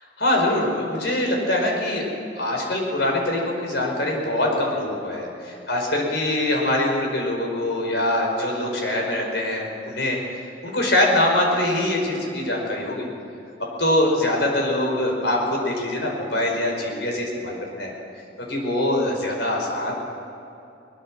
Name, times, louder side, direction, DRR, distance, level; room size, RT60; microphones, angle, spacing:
voice 1, 0.2-2.1 2.4-13.1 13.8-17.9 18.4-19.9, left 1 dB, 65° left, 0 dB, 5.2 m, -23 dB
23.0 x 21.0 x 6.3 m, 2.8 s
head